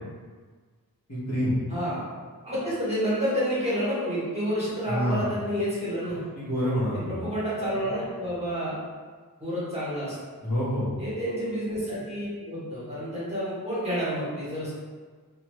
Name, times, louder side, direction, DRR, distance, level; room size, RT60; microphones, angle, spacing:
voice 1, 1.1-1.5 4.9-5.3 6.3-7.2 10.4-10.9, equal, 45° left, -10 dB, 1.1 m, -27 dB
voice 2, 1.7-2.0 2.4-6.3 6.9-8.7 9.4-10.1 11.0-14.7, equal, 15° right, -10 dB, 1.2 m, -29 dB
2.5 x 2.3 x 3.0 m, 1.5 s
wide cardioid pair, 60°, 36 cm